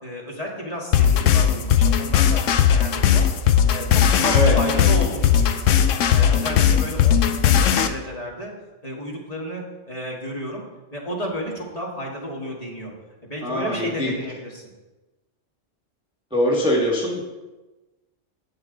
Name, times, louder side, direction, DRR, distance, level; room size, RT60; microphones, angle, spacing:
voice 1, 0.0-2.4 2.7-3.3 3.7-5.7 6.1-8.5 8.8-10.6 10.9-12.9 13.2-14.6, equal, 30° left, -2 dB, 1.8 m, -32 dB
sound 1, 0.9-7.9, left 8 dB, 80° left, 1.0 m, -18 dB
voice 2, 13.4-14.1 16.3-17.2, equal, 5° right, -2 dB, 1.3 m, -22 dB
10.5 x 8.2 x 3.9 m, 1.1 s
omnidirectional pair, 1.3 m